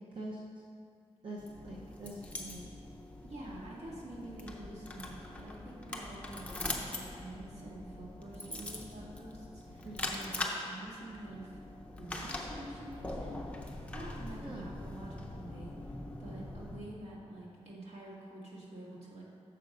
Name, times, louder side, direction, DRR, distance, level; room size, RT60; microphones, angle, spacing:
voice 1, 0.1-0.4 1.2-2.7 9.8-10.2 14.4-14.8, right 1 dB, 50° right, -4 dB, 0.6 m, -44 dB
sound 1, 1.4-16.8, left 1 dB, 10° left, 0.5 m, -42 dB
voice 2, 3.2-6.6 6.8-10.4 10.6-11.6 12.0-19.2, right 1 dB, 70° right, -5 dB, 1.6 m, -47 dB
6.7 x 5.2 x 5.1 m, 2.4 s
wide cardioid pair, 180°, 11 cm